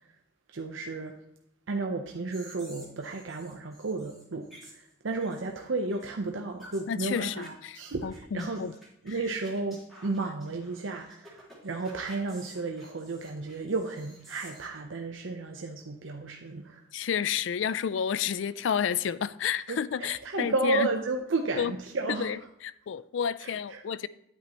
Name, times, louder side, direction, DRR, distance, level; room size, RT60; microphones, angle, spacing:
voice 1, 0.5-1.1 1.7-8.6 9.0-16.8 19.7-22.3 23.4-23.8, right 3 dB, 85° right, 0.7 m, -33 dB
sound 1, 2.3-5.6 5.9-6.1 6.6-6.8 7.1-7.5 7.8-14.7, right 1 dB, ahead, 3.7 m, -52 dB
voice 2, 6.9-8.7 16.9-20.9 21.6-21.7 22.2-24.1, left 8 dB, 70° left, 0.4 m, -31 dB
10.0 x 8.5 x 3.0 m
head